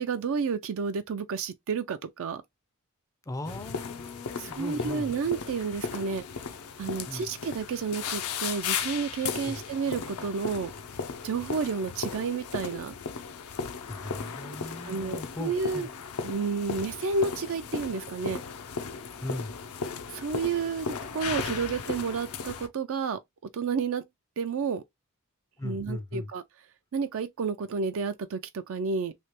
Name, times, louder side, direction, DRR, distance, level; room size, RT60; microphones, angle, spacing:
voice 1, 0.0-2.4 4.4-6.2 6.8-10.7 11.2-12.9 14.8-15.9 16.2-18.4 20.1-23.2 23.5-24.0 24.4-24.8 25.6-26.4 26.9-29.1, right 5 dB, 65° right, 0.4 m, -31 dB
voice 2, 3.3-5.1 7.1-7.3 9.5-9.6 13.9-15.9 19.2-19.6 25.6-26.3, left 2 dB, 15° left, 0.4 m, -38 dB
sound 1, 3.4-22.7, left 6 dB, 75° left, 0.6 m, -36 dB
3.2 x 2.8 x 2.9 m
head